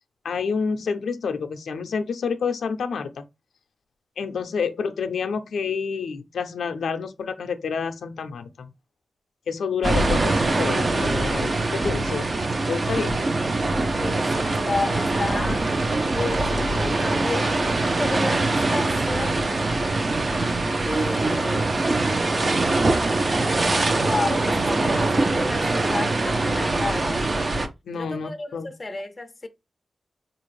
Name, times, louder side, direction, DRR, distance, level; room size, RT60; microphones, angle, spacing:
voice 1, 0.2-3.2 4.2-8.7 9.5-12.3 12.7-13.2 27.9-28.7, left 5 dB, 85° left, 0.4 m, -28 dB
sound 1, 9.8-27.7, right 2 dB, 35° right, 0.5 m, -23 dB
voice 2, 14.0-15.7 16.1-19.5 20.8-21.8 24.0-27.3 27.9-29.5, left 3 dB, 25° left, 0.5 m, -32 dB
4.3 x 2.4 x 3.1 m
wide cardioid pair, 115°, 0 cm